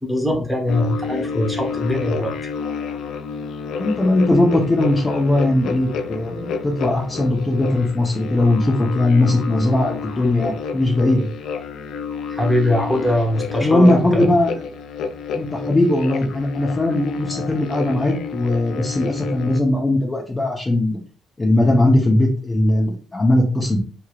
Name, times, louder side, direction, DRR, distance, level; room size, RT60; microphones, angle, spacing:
voice 1, 0.0-2.3 12.3-14.3, left 1 dB, ahead, 0 dB, 1.0 m, -21 dB
sound 1, 0.7-19.6, left 5 dB, 75° left, 0.3 m, -30 dB
voice 2, 3.8-11.3 13.6-14.5 15.3-21.0 21.4-23.8, left 1 dB, 25° left, -1 dB, 0.7 m, -19 dB
3.1 x 2.7 x 2.4 m, 0.39 s
cardioid pair, 90°, 0 cm